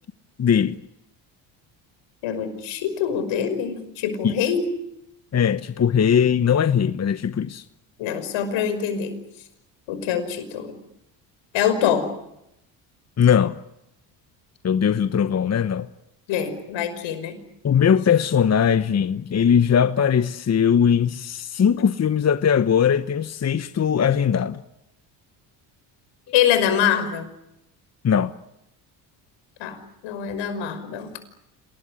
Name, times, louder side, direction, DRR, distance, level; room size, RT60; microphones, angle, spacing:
voice 1, 0.4-0.8 4.2-4.3 5.3-7.6 13.2-13.6 14.6-15.9 17.6-24.6 28.0-28.3, left 8 dB, 35° left, 1.1 m, -20 dB
voice 2, 2.2-4.6 8.0-9.2 9.9-10.8 11.5-12.1 16.3-17.4 26.3-27.3 29.6-31.1, left 8 dB, 75° left, 5.7 m, -24 dB
27.5 x 19.5 x 10.0 m
supercardioid pair, 75°, 46 cm